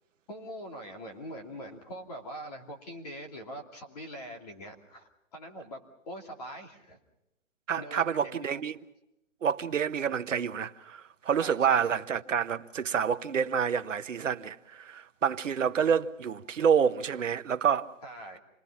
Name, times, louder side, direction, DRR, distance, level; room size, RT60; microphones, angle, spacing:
voice 1, 0.3-5.8 6.1-7.0 7.8-8.6 11.4-12.0 18.0-18.4, equal, 30° left, 2.6 m, -43 dB
voice 2, 7.7-8.8 9.4-17.9, right 7 dB, 75° right, 1.1 m, -28 dB
28.0 x 20.0 x 5.8 m
hypercardioid pair, 180°, 38 cm